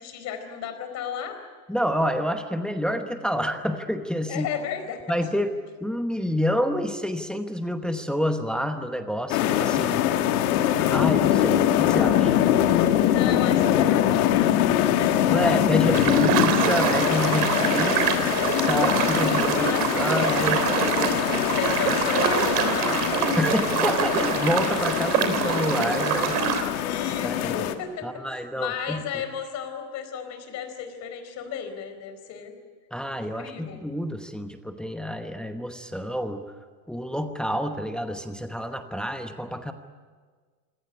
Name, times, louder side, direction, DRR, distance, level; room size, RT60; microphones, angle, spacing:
voice 1, 0.0-1.4 4.3-5.0 13.1-14.7 15.0-15.2 19.1-21.1 21.5-23.2 24.0-24.5 26.7-32.6 33.2-33.8, left 8 dB, 35° left, 7 dB, 4.4 m, -34 dB
voice 2, 1.7-4.5 5.1-5.5 5.8-10.0 10.8-12.4 15.2-18.1 18.6-20.7 23.4-26.5 27.2-27.6 28.0-29.0 32.9-36.4 36.9-39.7, equal, ahead, 6 dB, 1.0 m, -28 dB
sound 1, 9.3-27.7, left 11 dB, 65° left, 2.0 m, -23 dB
sound 2, 15.9-26.6, right 8 dB, 70° right, 3.5 m, -25 dB
25.5 x 17.5 x 9.9 m, 1.5 s
supercardioid pair, 145°, 47 cm